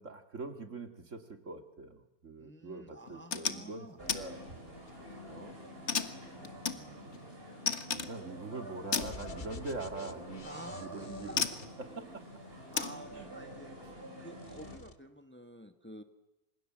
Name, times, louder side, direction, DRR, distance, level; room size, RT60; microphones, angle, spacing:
voice 1, 0.0-3.9 4.1-4.4 5.2-5.6 5.9-7.1 7.9-11.4 11.8-12.3 13.1-13.3, right 3 dB, 60° right, 7 dB, 2.4 m, -44 dB
voice 2, 2.4-4.0 10.4-11.4 12.7-13.7 14.2-16.0, right 1 dB, 10° left, 8 dB, 1.4 m, -49 dB
sound 1, 3.1-3.6 4.1-4.2 4.7-5.1 5.9-7.2 7.7-8.2 8.9-9.1 10.4-10.6 11.4-11.7 12.7-13.0, left 5 dB, 55° left, 1.7 m, -33 dB
sound 2, 4.0-14.8, equal, 40° right, 6.5 m, -48 dB
sound 3, 9.0-12.3 13.0-14.1 14.3-15.0, left 4 dB, 35° left, 1.3 m, -50 dB
27.5 x 26.5 x 7.4 m, 0.97 s
omnidirectional pair, 1.5 m